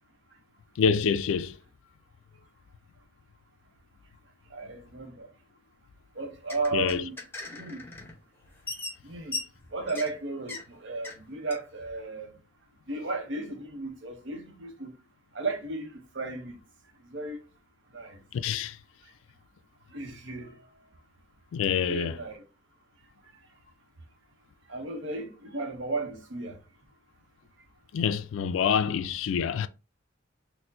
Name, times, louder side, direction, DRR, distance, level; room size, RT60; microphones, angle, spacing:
voice 1, 0.8-1.6 6.7-7.0 18.3-18.8 21.5-22.2 27.9-29.7, left 7 dB, 80° left, 0.3 m, -26 dB
voice 2, 4.5-5.3 6.2-7.2 7.5-7.9 9.0-9.4 9.7-12.3 12.9-14.9 15.3-16.6 17.1-17.4 17.9-18.2 19.9-20.6 21.8-22.4 24.7-26.6, right 3 dB, 65° right, 0.8 m, -34 dB
sound 1, 6.2-8.2 8.5-10.2 10.5-10.6 11.0-11.2 11.5-11.6, left 3 dB, 10° left, 0.8 m, -39 dB
4.2 x 2.1 x 2.7 m
head